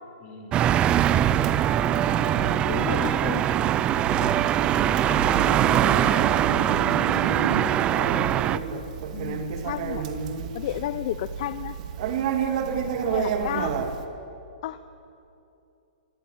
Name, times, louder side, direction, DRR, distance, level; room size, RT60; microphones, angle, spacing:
voice 1, 0.2-0.6 2.7-3.6 4.0-5.6 5.9-7.6, left 6 dB, 25° left, 3 dB, 3.8 m, -41 dB
sound 1, 0.5-8.6, right 11 dB, 20° right, 0.6 m, -22 dB
Conversation, 0.9-14.0, right 6 dB, 45° right, 2.4 m, -31 dB
voice 2, 2.6-3.4 9.1-10.1 10.5-11.8 13.1-13.8 14.6-14.8, left 13 dB, 45° left, 12 dB, 0.9 m, -32 dB
sound 2, 2.9-7.7, right 5 dB, 75° right, 3.2 m, -37 dB
25.0 x 24.0 x 9.2 m, 2.7 s
hypercardioid pair, 155°, 5 cm